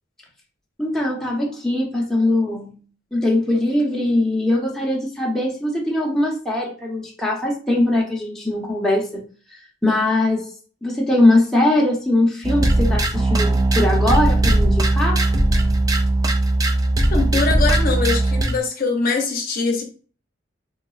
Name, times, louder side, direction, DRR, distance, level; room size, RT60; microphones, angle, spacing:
voice 1, 0.8-2.8 3.1-9.2 9.8-10.5 10.8-15.2, left 1 dB, 5° left, -3 dB, 0.7 m, -21 dB
sound 1, 12.4-18.6, right 1 dB, 20° right, 0.3 m, -18 dB
voice 2, 17.1-19.8, left 4 dB, 50° left, 2 dB, 0.7 m, -22 dB
3.8 x 2.3 x 2.4 m, 0.39 s
head